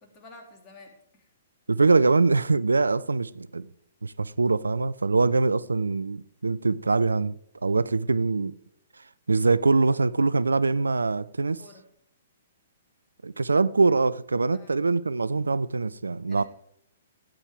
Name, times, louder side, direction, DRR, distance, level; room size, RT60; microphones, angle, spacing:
voice 1, 0.0-1.3 11.6-11.8 14.5-14.7 16.3-16.4, left 2 dB, 25° left, 2.9 m, -50 dB
voice 2, 1.7-3.7 4.0-7.4 7.6-8.5 9.3-11.6 13.2-16.4, right 3 dB, 75° right, 0.4 m, -23 dB
16.5 x 8.9 x 3.6 m
figure-of-eight pair, 115°, 0 cm